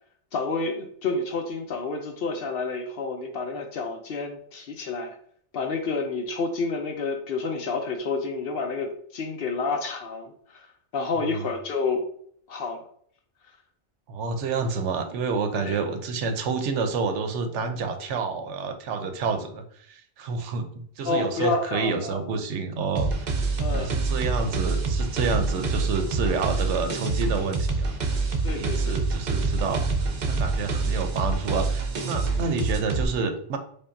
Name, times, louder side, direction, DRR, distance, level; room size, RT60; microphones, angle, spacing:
voice 1, 0.3-5.2 5.5-10.6 10.9-12.1 12.5-12.8 15.5-15.8 21.0-22.2 23.6-23.9 28.4-28.9, left 3 dB, 60° left, 4 dB, 0.7 m, -29 dB
voice 2, 14.1-23.3 23.7-27.9 28.5-33.6, right 4 dB, 80° right, 7 dB, 0.9 m, -29 dB
sound 1, 23.0-33.1, right 3 dB, 55° right, 0.5 m, -26 dB
5.2 x 2.2 x 2.6 m, 0.63 s
omnidirectional pair, 1.2 m